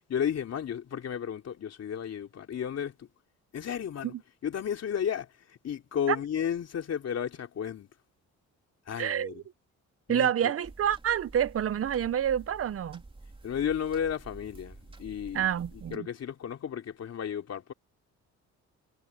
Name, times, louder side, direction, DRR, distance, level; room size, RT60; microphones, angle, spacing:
voice 1, 0.1-3.1 3.5-4.1 4.4-7.9 8.9-9.4 10.1-10.5 13.4-15.5 15.9-17.7, left 8 dB, 55° left, 3.1 m, -33 dB
voice 2, 9.0-9.4 10.1-13.0 15.3-16.1, right 10 dB, 50° right, 0.9 m, -28 dB
sound 1, 10.6-16.0, right 2 dB, 15° right, 3.5 m, -49 dB
cardioid pair, 90°, 30 cm